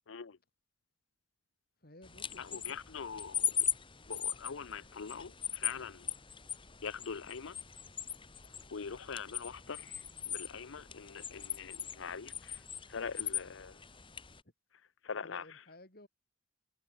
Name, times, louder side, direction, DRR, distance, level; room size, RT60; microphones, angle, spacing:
voice 1, 0.1-0.4 2.4-3.7 4.1-6.1 6.8-7.6 8.7-12.6 12.9-13.8 15.0-15.4, left 6 dB, 85° left, 0.7 m, -43 dB
voice 2, 1.8-2.8 15.2-16.1, left 1 dB, 50° left, 5.6 m, -56 dB
sound 1, 2.0-14.4, left 8 dB, 25° left, 2.4 m, -40 dB
head